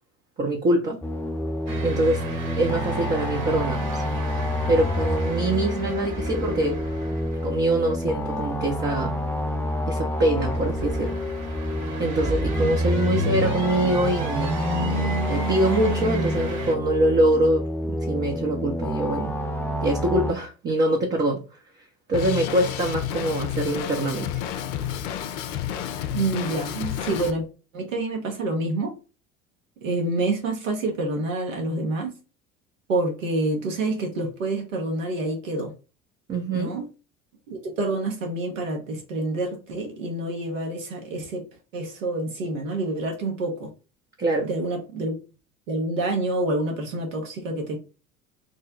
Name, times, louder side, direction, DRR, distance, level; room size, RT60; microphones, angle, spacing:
voice 1, 0.4-1.0 1.8-2.2 2.6-4.0 4.7-6.8 7.4-9.1 9.9-11.2 12.0-14.5 14.8-19.4 19.8-21.4 22.1-24.3 36.3-36.7 44.2-44.5, right 1 dB, 25° right, 0.7 m, -24 dB
sound 1, 1.0-20.3, left 1 dB, 5° left, 0.3 m, -29 dB
sound 2, 1.7-16.7, right 1 dB, 45° right, 1.3 m, -31 dB
Drum kit, 22.1-27.3, left 10 dB, 65° left, 0.5 m, -30 dB
voice 2, 26.1-27.4 27.7-28.9 29.8-32.1 32.9-35.7 36.5-36.9 37.5-41.4 41.7-43.7 44.4-45.1 45.7-47.8, right 2 dB, 75° right, 1.1 m, -27 dB
3.2 x 2.1 x 3.7 m
figure-of-eight pair, 65°, 39 cm